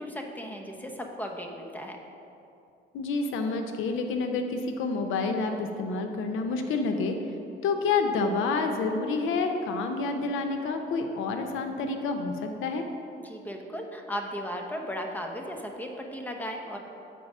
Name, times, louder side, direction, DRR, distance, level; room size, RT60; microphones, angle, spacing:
voice 1, 0.0-2.0 13.2-16.8, equal, 10° left, 2 dB, 0.9 m, -36 dB
voice 2, 2.9-7.2 7.6-12.8, left 4 dB, 85° left, 5 dB, 0.7 m, -28 dB
8.5 x 4.9 x 5.4 m, 2.7 s
cardioid pair, 90°, 20 cm